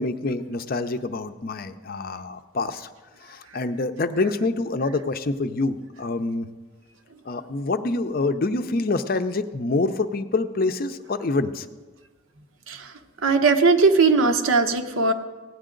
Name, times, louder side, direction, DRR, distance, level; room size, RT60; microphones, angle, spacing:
voice 1, 0.0-2.9 3.2-6.5 7.3-11.7, left 3 dB, 45° left, 10 dB, 0.5 m, -26 dB
voice 2, 13.2-15.1, right 4 dB, 80° right, 7 dB, 0.9 m, -19 dB
17.0 x 10.0 x 3.8 m, 1.3 s
head